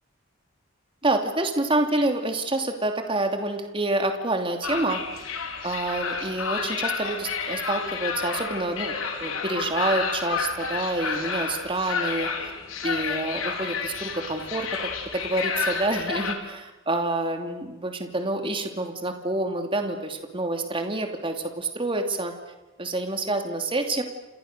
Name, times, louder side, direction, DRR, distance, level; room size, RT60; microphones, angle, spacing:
voice 1, 1.0-5.0 5.6-8.9 9.2-12.5 12.8-14.7 15.1-22.3 22.8-24.0, right 2 dB, 25° right, 5 dB, 2.8 m, -27 dB
sound 1, 4.6-16.3, left 5 dB, 85° left, 4.2 m, -30 dB
29.5 x 28.0 x 6.7 m, 1.1 s
head